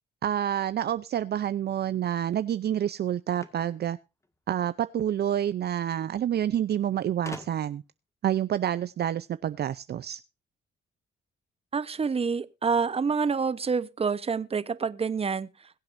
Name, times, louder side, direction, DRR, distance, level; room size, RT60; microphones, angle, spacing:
voice 1, 0.2-4.0 4.5-7.8 8.2-10.2, right 10 dB, 55° right, 0.6 m, -28 dB
sound 1, 3.3-4.7 5.8-5.9 6.2-6.3 7.2-7.9, left 2 dB, 15° left, 1.8 m, -44 dB
voice 2, 11.7-15.5, right 5 dB, 30° right, 1.0 m, -27 dB
22.0 x 7.7 x 2.6 m
cardioid pair, 90°, 20 cm